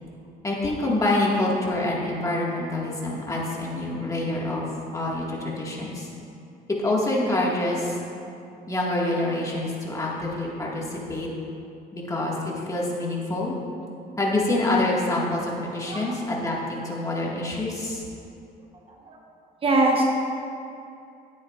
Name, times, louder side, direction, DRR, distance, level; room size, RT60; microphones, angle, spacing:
voice 1, 0.4-6.1 6.7-8.0 8.7-11.3 11.9-13.5 14.2-18.0, left 2 dB, 20° left, -4 dB, 1.8 m, -26 dB
voice 2, 19.6-20.0, right 2 dB, 35° right, 0 dB, 1.0 m, -22 dB
11.5 x 9.6 x 2.5 m, 2.6 s
cardioid pair, 110°, 17 cm